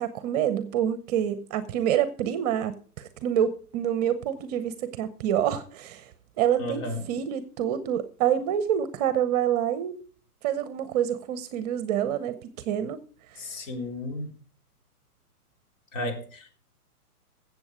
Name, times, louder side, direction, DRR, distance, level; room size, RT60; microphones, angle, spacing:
voice 1, 0.0-6.1 6.4-6.8 7.1-9.9 10.4-13.0, right 10 dB, 25° right, 0.8 m, -27 dB
voice 2, 6.6-7.1 13.4-14.4 15.9-16.5, left 1 dB, 55° left, 3.6 m, -33 dB
15.0 x 7.5 x 5.0 m
hypercardioid pair, 140°, 46 cm